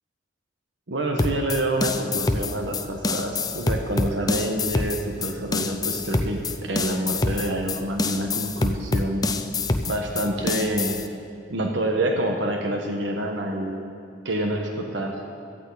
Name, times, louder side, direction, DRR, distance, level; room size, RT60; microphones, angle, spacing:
voice 1, 0.9-9.2 9.9-11.0 11.5-13.8 14.2-15.2, right 1 dB, 85° right, 2 dB, 1.4 m, -27 dB
sound 1, 1.2-11.1, left 3 dB, 20° left, 0.6 m, -26 dB
17.0 x 14.0 x 4.1 m, 2.6 s
head